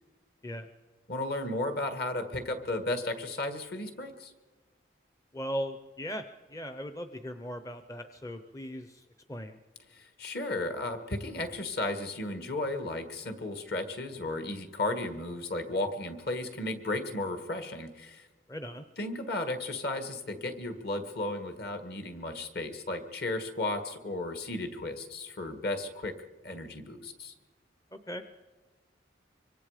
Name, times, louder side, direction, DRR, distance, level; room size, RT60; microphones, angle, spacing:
voice 1, 1.1-4.3 9.9-18.3 19.0-26.1 26.4-27.3, left 2 dB, 50° left, 7 dB, 1.8 m, -34 dB
voice 2, 5.3-9.0 9.3-9.6 18.5-18.9 27.9-28.2, equal, 15° left, 9 dB, 0.6 m, -38 dB
25.0 x 24.0 x 5.0 m, 1.3 s
head